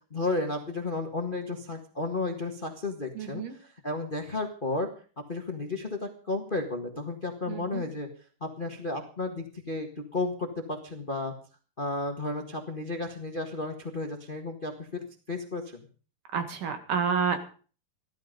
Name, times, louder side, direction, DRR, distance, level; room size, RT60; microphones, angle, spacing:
voice 1, 0.1-4.9 5.3-8.1 8.4-11.3 11.8-15.9, left 2 dB, 40° left, 4 dB, 0.7 m, -33 dB
voice 2, 3.2-3.5 7.5-7.8 16.3-17.5, right 6 dB, 65° right, 7 dB, 3.4 m, -29 dB
15.5 x 13.0 x 5.3 m, 0.39 s
omnidirectional pair, 4.1 m